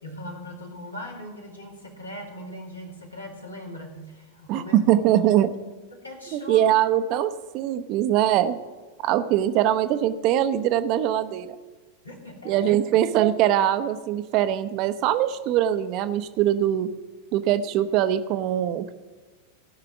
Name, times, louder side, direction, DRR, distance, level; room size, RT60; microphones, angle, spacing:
voice 1, 0.0-4.7 5.9-6.6 12.0-12.8, left 1 dB, 85° left, 0 dB, 2.2 m, -39 dB
voice 2, 4.5-5.5 6.3-8.6 9.0-11.6 12.4-16.9 17.3-18.9, right 11 dB, 40° right, 11 dB, 0.7 m, -22 dB
15.0 x 5.8 x 7.0 m, 1.3 s
figure-of-eight pair, 90°, 0 cm